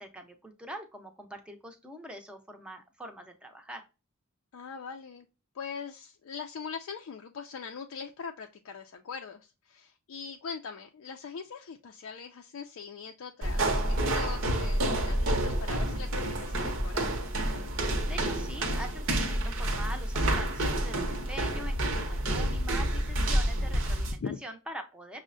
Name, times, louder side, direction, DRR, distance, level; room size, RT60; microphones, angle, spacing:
voice 1, 0.0-3.8 17.8-25.2, right 1 dB, 5° right, 4 dB, 0.5 m, -43 dB
voice 2, 4.5-5.3 5.5-17.1 24.2-24.4, left 6 dB, 70° left, 3 dB, 0.4 m, -41 dB
sound 1, 13.4-24.2, right 1 dB, 60° right, 0.7 m, -29 dB
6.1 x 2.1 x 2.5 m, 0.29 s
head